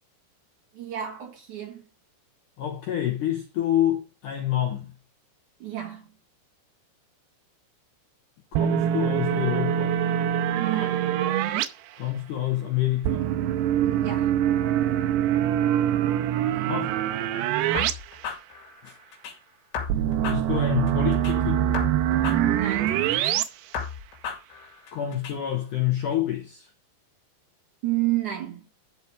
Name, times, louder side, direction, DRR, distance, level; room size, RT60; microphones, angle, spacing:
voice 1, 0.7-1.8 5.6-6.1 10.5-11.1 13.8-14.3 22.3-23.1 27.8-28.7, right 14 dB, 55° right, 2.6 m, -30 dB
voice 2, 2.6-4.9 8.5-10.0 12.0-13.3 16.5-16.9 18.8-18.9 20.2-21.6 24.9-26.7, left 12 dB, 70° left, 2.0 m, -27 dB
sound 1, 8.5-11.7 13.0-17.9 18.2-18.3 19.9-23.4, right 11 dB, 80° right, 2.7 m, -24 dB
sound 2, 17.8-19.4 19.7-21.4 21.7-23.4 23.7-25.4, left 6 dB, 90° left, 4.6 m, -35 dB
13.0 x 4.7 x 4.9 m
omnidirectional pair, 5.1 m